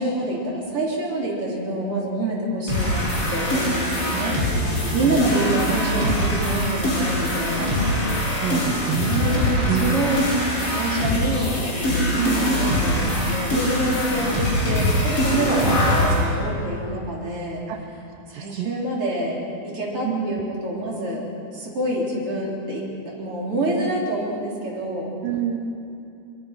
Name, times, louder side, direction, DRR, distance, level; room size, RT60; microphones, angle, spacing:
voice 1, 0.0-3.0 3.3-7.7 9.1-10.2 10.6-17.6 18.3-19.4 19.6-21.2 21.5-25.1, right 1 dB, 40° right, -3 dB, 4.4 m, -27 dB
sound 1, 2.7-16.2, left 1 dB, 40° left, 7.4 m, -23 dB
voice 2, 4.1-5.2 5.6-6.1 7.6-7.7 8.4-10.0 12.2-12.6 15.5-15.7 17.7-17.8 18.3-18.8 20.0-20.5 25.2-25.6, right 10 dB, 80° right, 4 dB, 2.6 m, -28 dB
24.0 x 22.5 x 6.0 m, 2.6 s
omnidirectional pair, 4.1 m